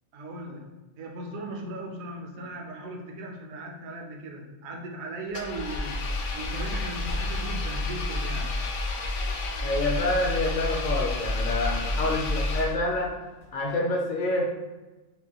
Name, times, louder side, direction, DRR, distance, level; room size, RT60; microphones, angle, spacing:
voice 1, 0.1-0.7 1.0-8.6, right 1 dB, 70° right, 1 dB, 1.1 m, -38 dB
Engine, 5.3-13.1, left 2 dB, 75° left, 1.0 m, -30 dB
voice 2, 9.6-13.1 13.5-14.6, left 2 dB, 55° left, 0 dB, 0.5 m, -27 dB
5.2 x 2.2 x 2.9 m, 1.1 s
omnidirectional pair, 1.5 m